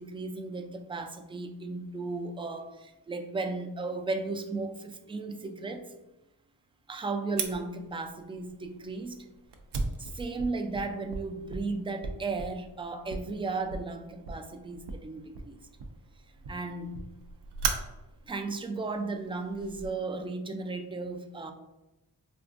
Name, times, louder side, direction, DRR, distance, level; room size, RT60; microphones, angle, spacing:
voice 1, 0.0-5.9 6.9-9.3 10.0-15.6 16.5-17.0 18.3-21.5, right 3 dB, 15° right, 5 dB, 0.3 m, -35 dB
Fire, 7.4-19.9, right 4 dB, 80° right, 0.6 m, -39 dB
4.4 x 2.4 x 2.5 m, 0.99 s
cardioid pair, 80°, 40 cm